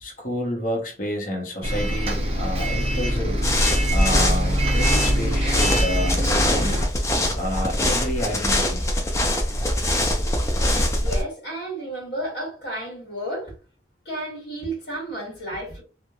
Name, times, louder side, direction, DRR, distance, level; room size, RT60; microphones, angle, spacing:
voice 1, 0.0-3.4 3.9-6.8 7.3-8.9, equal, 45° left, 0.8 m, -29 dB
Bus, 1.6-6.9, equal, 35° right, 0.6 m, -24 dB
sound 1, 3.4-11.2, left 1 dB, 15° left, 0.4 m, -23 dB
voice 2, 10.9-13.5 14.0-15.8, right 1 dB, 70° left, 1.2 m, -32 dB
2.9 x 2.1 x 2.3 m
head